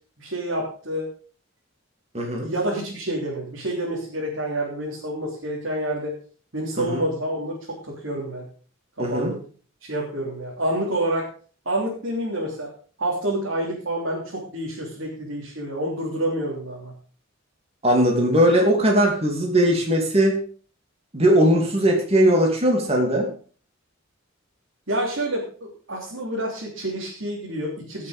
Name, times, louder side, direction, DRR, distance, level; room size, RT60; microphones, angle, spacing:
voice 1, 0.2-1.1 2.4-6.1 6.5-8.4 9.0-9.4 9.8-11.3 11.6-12.7 13.0-16.9 24.9-28.1, right 1 dB, 70° right, -4 dB, 3.4 m, -28 dB
voice 2, 2.1-2.5 6.8-7.0 9.0-9.3 17.8-20.4 21.1-23.3, equal, 30° right, 0 dB, 2.7 m, -19 dB
17.0 x 6.8 x 5.1 m, 0.42 s
head